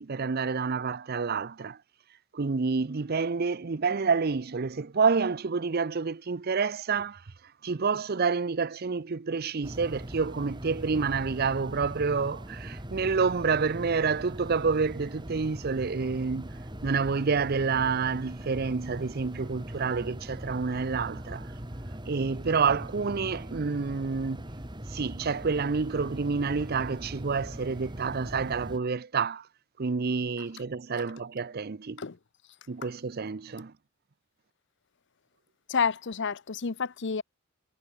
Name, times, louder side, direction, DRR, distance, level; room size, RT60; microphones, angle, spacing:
voice 1, 0.0-1.8 2.3-7.2 7.6-16.5 16.8-21.5 22.1-24.5 24.9-29.5 29.8-32.0 32.7-33.7, right 5 dB, 45° right, 0.6 m, -28 dB
sound 1, 9.6-28.8, equal, 20° right, 2.7 m, -40 dB
voice 2, 35.7-37.2, left 5 dB, 55° left, 0.7 m, -29 dB
head